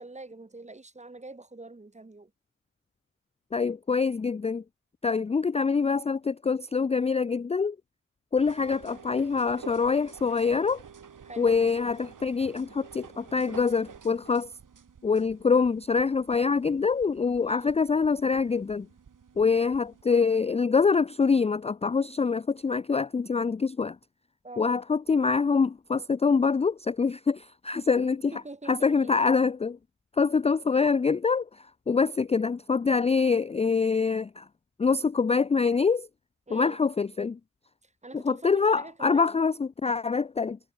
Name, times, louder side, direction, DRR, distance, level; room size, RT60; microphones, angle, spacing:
voice 1, 0.0-2.3 11.2-11.5 17.4-17.7 24.4-24.8 27.9-29.2 36.5-36.8 37.8-39.4, right 2 dB, 20° right, 1.5 m, -45 dB
voice 2, 3.5-4.6 5.0-7.8 8.3-10.8 11.4-14.5 15.0-18.9 19.4-24.0 24.6-29.8 30.2-34.5 34.8-36.1 36.5-37.4 38.1-40.6, left 5 dB, 20° left, 0.3 m, -25 dB
sound 1, 8.4-20.0, right 6 dB, 80° right, 2.3 m, -50 dB
wide cardioid pair, 85°, 31 cm